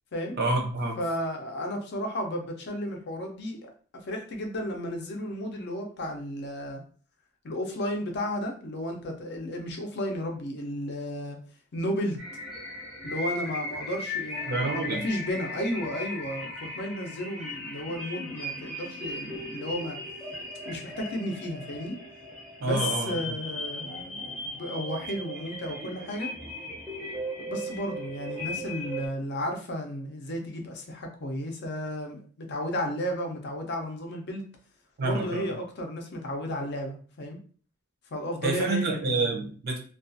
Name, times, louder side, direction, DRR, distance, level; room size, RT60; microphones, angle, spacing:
voice 1, 0.4-1.0 14.5-15.0 22.6-23.3 35.0-35.5 38.4-39.8, right 3 dB, 45° right, 2 dB, 0.5 m, -28 dB
voice 2, 1.0-3.7 4.0-6.8 7.4-11.4 11.7-12.2 13.0-20.0 20.6-22.0 22.6-26.3 27.4-34.4 35.0-37.4 38.1-39.3, equal, 50° left, 2 dB, 0.5 m, -33 dB
sound 1, 12.2-29.1, left 1 dB, ahead, 0.6 m, -37 dB
2.3 x 2.3 x 2.6 m, 0.42 s
head